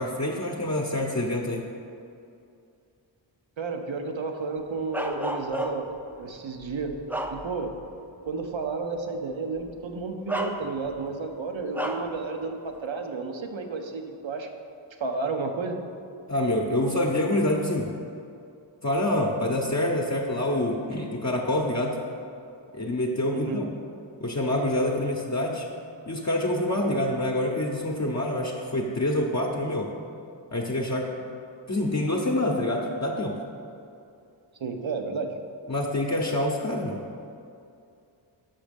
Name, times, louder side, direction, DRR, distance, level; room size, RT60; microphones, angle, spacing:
voice 1, 0.0-1.7 16.3-17.9 18.8-22.0 22.7-23.7 24.2-25.7 26.1-29.9 30.5-31.1 31.7-33.4 35.7-37.0, left 1 dB, 35° left, -2 dB, 0.8 m, -26 dB
voice 2, 3.6-5.9 6.2-7.0 7.3-7.7 8.3-14.5 15.0-15.8 23.3-23.6 34.6-35.4, right 4 dB, 70° right, 5 dB, 0.8 m, -32 dB
Bark, 4.9-6.0 6.6-7.9 8.3-8.5 9.6-9.7 10.3-11.1 11.7-12.2, right 1 dB, 5° right, 0.5 m, -32 dB
6.2 x 5.7 x 5.2 m, 2.6 s
cardioid pair, 45°, 48 cm